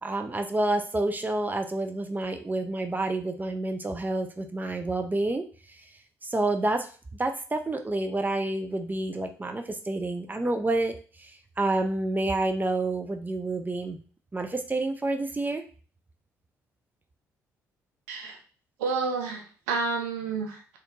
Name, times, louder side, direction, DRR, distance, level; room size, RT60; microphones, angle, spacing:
voice 1, 0.0-5.8 6.2-6.9 7.2-14.0 14.3-15.6, right 2 dB, 20° right, 6 dB, 0.7 m, -29 dB
voice 2, 18.8-20.8, right 4 dB, 80° right, 2 dB, 0.6 m, -30 dB
4.2 x 2.7 x 2.9 m, 0.37 s
hypercardioid pair, 45°, 9 cm